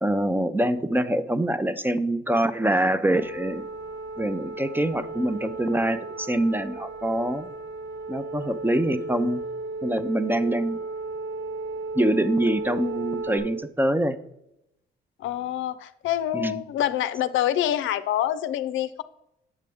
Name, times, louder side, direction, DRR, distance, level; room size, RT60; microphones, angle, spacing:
voice 1, 0.0-3.6 4.2-7.5 8.1-9.4 9.8-10.8 12.0-14.2 16.3-16.6, right 1 dB, 10° right, 12 dB, 0.5 m, -25 dB
sound 1, 3.1-13.4, right 3 dB, 70° right, 2.8 m, -35 dB
voice 2, 15.2-19.0, left 11 dB, 80° left, 12 dB, 0.5 m, -26 dB
8.4 x 6.5 x 3.5 m, 0.83 s
cardioid pair, 90°, 20 cm